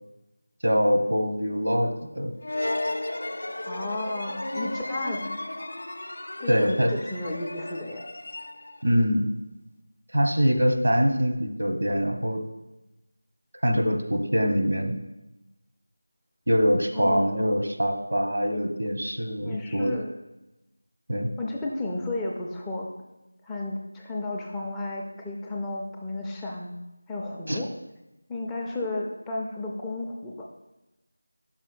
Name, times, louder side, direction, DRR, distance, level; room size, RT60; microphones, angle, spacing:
voice 1, 0.6-2.3 6.5-6.9 8.8-9.3 10.1-12.4 13.6-14.9 16.5-19.9 21.1-21.3 27.5-27.6, equal, 75° right, 4 dB, 1.0 m, -24 dB
sound 1, 2.4-8.9, left 1 dB, 70° left, 0.4 m, -34 dB
voice 2, 3.7-5.4 6.4-8.0 16.9-17.5 19.4-20.1 21.4-22.9 23.4-26.8 27.1-27.7 28.3-30.3, left 2 dB, 5° left, -3 dB, 0.4 m, -33 dB
5.6 x 4.8 x 5.2 m, 0.98 s
figure-of-eight pair, 170°, 0 cm